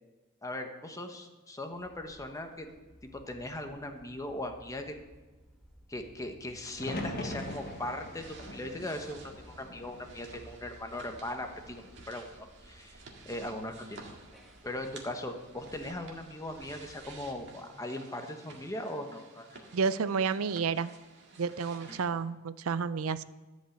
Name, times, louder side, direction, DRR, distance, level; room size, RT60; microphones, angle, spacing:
voice 1, 0.4-2.7 3.0-5.0 5.9-12.3 12.6-13.0 13.2-14.1 14.6-19.6 21.9-22.0, left 1 dB, 15° left, 5 dB, 1.1 m, -39 dB
sound 1, 1.7-17.5, equal, ahead, 1.6 m, -57 dB
sound 2, 6.5-22.1, right 3 dB, 55° right, 1.9 m, -53 dB
sound 3, 6.8-10.8 11.2-11.9 13.8-14.3, left 1 dB, 45° left, 1.4 m, -42 dB
voice 2, 19.7-20.9 21.4-23.2, right 5 dB, 80° right, 15 dB, 0.5 m, -30 dB
13.5 x 5.4 x 7.9 m, 1.2 s
head